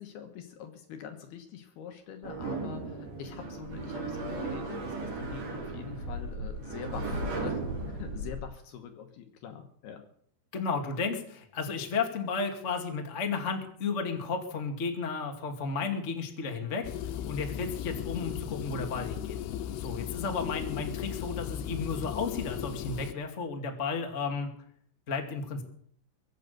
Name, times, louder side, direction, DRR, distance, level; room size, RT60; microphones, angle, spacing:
voice 1, 0.0-7.6 7.9-10.1, left 8 dB, 70° left, 6 dB, 2.8 m, -44 dB
sound 1, 2.2-8.4, right 2 dB, 50° right, 7.0 m, -36 dB
voice 2, 10.5-19.4 19.7-24.5 25.1-25.6, left 4 dB, 40° left, 3 dB, 1.0 m, -33 dB
sound 2, 16.8-23.1, left 10 dB, 85° left, 3.4 m, -36 dB
23.0 x 9.0 x 6.8 m, 0.63 s
omnidirectional pair, 5.6 m